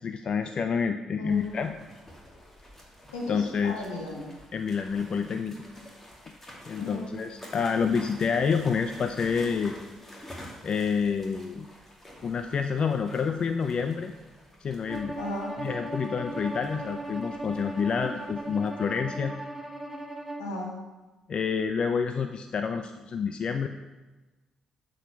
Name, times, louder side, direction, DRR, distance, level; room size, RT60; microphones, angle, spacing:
voice 1, 0.0-1.7 3.3-3.8 4.5-5.6 6.7-9.7 10.6-11.7 12.2-14.1 14.6-15.2 15.6-19.3 21.3-23.7, left 6 dB, 50° left, 8 dB, 0.4 m, -28 dB
sound 1, 1.3-18.7, equal, 15° left, 2.5 m, -49 dB
voice 2, 3.1-4.3 5.0-5.2 6.8-7.1 15.2-15.5 20.4-20.7, left 2 dB, 85° left, -3 dB, 1.8 m, -35 dB
Bowed string instrument, 14.9-20.5, right 1 dB, 10° right, 1.2 m, -37 dB
7.7 x 4.9 x 5.9 m, 1.1 s
hypercardioid pair, 45°, 2 cm